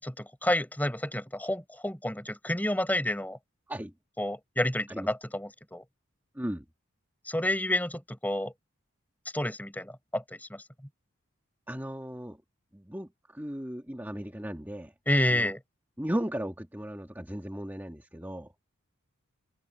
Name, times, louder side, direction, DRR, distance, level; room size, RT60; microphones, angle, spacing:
voice 1, 0.0-3.4 4.2-5.8 7.2-8.5 9.3-10.6 15.1-15.6, left 1 dB, 10° left, 5.0 m, -30 dB
voice 2, 6.3-6.6 11.7-12.4 12.7-14.9 15.3-15.5 16.0-18.5, equal, 10° right, 1.7 m, -36 dB
open air
head